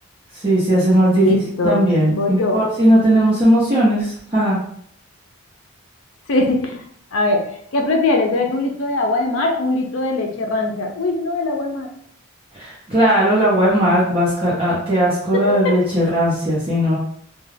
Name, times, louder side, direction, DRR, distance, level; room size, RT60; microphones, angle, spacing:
voice 1, 0.3-1.2 1.6-4.6 12.5-17.0, right 1 dB, 25° right, -10 dB, 0.8 m, -17 dB
voice 2, 1.1-2.6 6.3-6.8 7.1-7.4 7.7-11.9 15.3-15.7, left 2 dB, 65° left, 2 dB, 0.5 m, -21 dB
2.3 x 2.3 x 3.2 m, 0.64 s
head